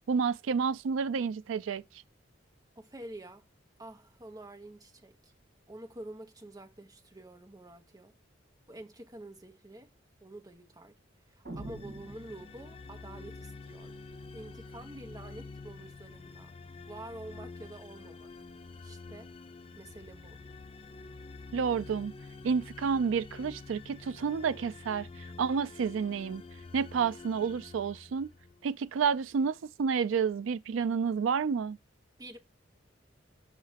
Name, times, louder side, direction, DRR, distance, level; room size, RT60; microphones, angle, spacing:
voice 1, 0.1-1.8 21.5-22.1 22.4-25.1 25.4-26.4 26.7-28.3 28.6-31.8, right 6 dB, 90° right, 0.4 m, -30 dB
voice 2, 2.8-3.5 3.8-5.3 5.7-8.1 8.7-9.9 10.2-11.0 11.3-14.0 14.3-16.5 16.9-18.3 18.8-19.3 19.8-20.4 32.2-32.4, right 1 dB, 20° right, 1.0 m, -48 dB
sound 1, 11.5-13.1, right 1 dB, 50° right, 2.1 m, -45 dB
sound 2, 11.6-28.7, left 3 dB, 30° left, 0.4 m, -48 dB
5.8 x 3.2 x 5.7 m
head